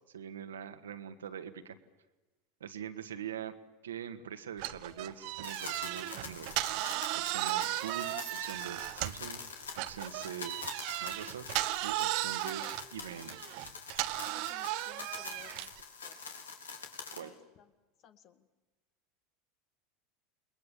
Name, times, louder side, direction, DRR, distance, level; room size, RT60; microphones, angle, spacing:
voice 1, 0.1-1.8 2.6-3.5 3.8-6.5 7.1-9.4 9.8-10.5 11.0-11.4 11.8-12.7 12.9-13.4 17.1-17.3, right 8 dB, 80° right, 8 dB, 1.8 m, -43 dB
sound 1, 4.6-9.3 9.7-15.8, right 17 dB, 55° right, 1.0 m, -36 dB
KB Broken Record Crisp, 5.4-17.2, left 5 dB, 80° left, 3.6 m, -45 dB
voice 2, 14.2-15.7 16.0-16.2 17.1-17.7 18.0-18.5, left 9 dB, 50° left, 8 dB, 2.0 m, -58 dB
29.5 x 21.0 x 7.4 m, 1.2 s
hypercardioid pair, 80°, 0 cm